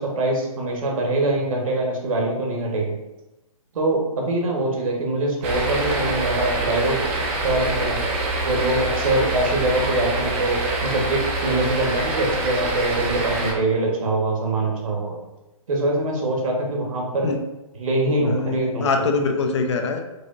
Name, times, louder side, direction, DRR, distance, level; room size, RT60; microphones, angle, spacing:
voice 1, 0.0-2.9 3.7-7.0 7.4-8.0 8.4-15.2 15.7-17.3 17.7-19.1, right 2 dB, 65° right, -1 dB, 1.3 m, -23 dB
sound 1, 5.4-13.5, right 2 dB, 20° right, 0.5 m, -25 dB
voice 2, 18.2-20.0, left 4 dB, 50° left, 5 dB, 0.5 m, -23 dB
4.8 x 2.5 x 2.5 m, 0.97 s
hypercardioid pair, 155°, 18 cm